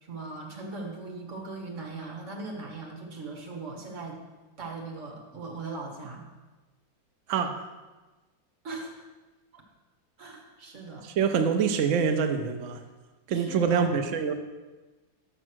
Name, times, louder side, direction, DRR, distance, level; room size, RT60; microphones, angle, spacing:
voice 1, 0.0-4.2 4.6-6.2 8.6-9.0 9.5-9.6 10.2-11.1 13.3-14.0, right 3 dB, 45° right, 0 dB, 1.6 m, -39 dB
voice 2, 7.3-7.7 11.2-12.8 13.3-14.3, right 6 dB, 80° right, 6 dB, 0.6 m, -25 dB
6.7 x 6.1 x 6.1 m, 1.2 s
omnidirectional pair, 2.0 m